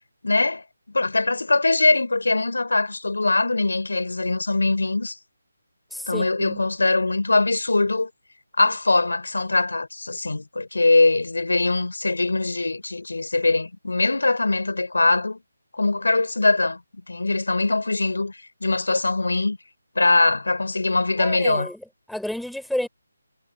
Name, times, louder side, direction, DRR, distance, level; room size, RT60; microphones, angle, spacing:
voice 1, 0.2-0.6 0.9-5.1 6.1-8.1 8.6-15.4 15.7-16.8 17.1-19.6 20.0-21.7, left 3 dB, 75° left, 4.2 m, -22 dB
voice 2, 5.9-6.6 21.2-22.9, left 1 dB, ahead, 4.5 m, -31 dB
figure-of-eight pair, 155°, 0 cm